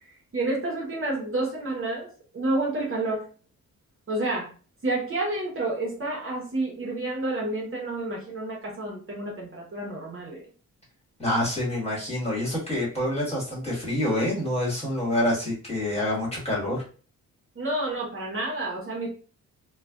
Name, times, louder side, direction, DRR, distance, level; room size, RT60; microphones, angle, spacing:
voice 1, 0.3-2.1 2.3-3.3 4.1-4.5 4.8-10.4 17.6-19.1, right 2 dB, 35° right, -2 dB, 0.8 m, -29 dB
voice 2, 11.2-16.8, left 1 dB, 15° left, -4 dB, 1.4 m, -27 dB
3.2 x 2.2 x 2.3 m, 0.38 s
cardioid pair, 105°, 36 cm